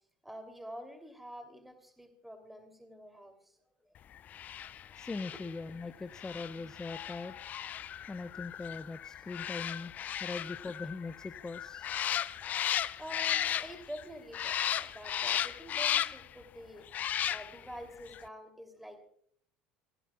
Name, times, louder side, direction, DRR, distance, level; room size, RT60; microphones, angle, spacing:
voice 1, 0.2-3.6 4.7-4.8 5.3-5.4 13.0-19.1, equal, 5° right, 6 dB, 3.1 m, -47 dB
sound 1, 4.3-14.0 14.3-16.3 16.9-17.7 18.1-18.2, left 10 dB, 40° left, 0.5 m, -35 dB
voice 2, 5.0-7.3 8.1-9.9 10.2-11.9, left 3 dB, 15° left, 11 dB, 0.8 m, -41 dB
27.0 x 17.0 x 2.4 m, 0.62 s
figure-of-eight pair, 70°, 4 cm